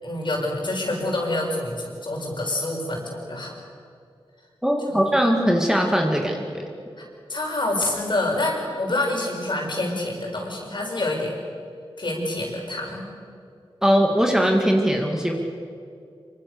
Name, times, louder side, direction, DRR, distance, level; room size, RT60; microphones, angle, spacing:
voice 1, 0.0-3.5 4.9-5.0 7.0-11.3 12.0-13.0, left 2 dB, 55° left, -1 dB, 6.7 m, -27 dB
voice 2, 4.6-6.6 13.8-15.3, equal, 5° right, 1 dB, 2.3 m, -20 dB
25.5 x 24.0 x 7.0 m, 2.4 s
wide cardioid pair, 85°, 10 cm